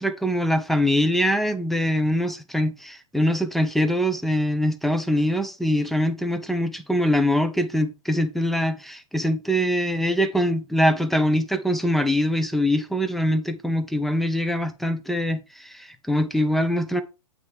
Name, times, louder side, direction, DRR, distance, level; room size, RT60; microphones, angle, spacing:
voice 1, 0.0-17.0, equal, ahead, 0.4 m, -23 dB
9.0 x 3.4 x 3.4 m
figure-of-eight pair, 110°, 19 cm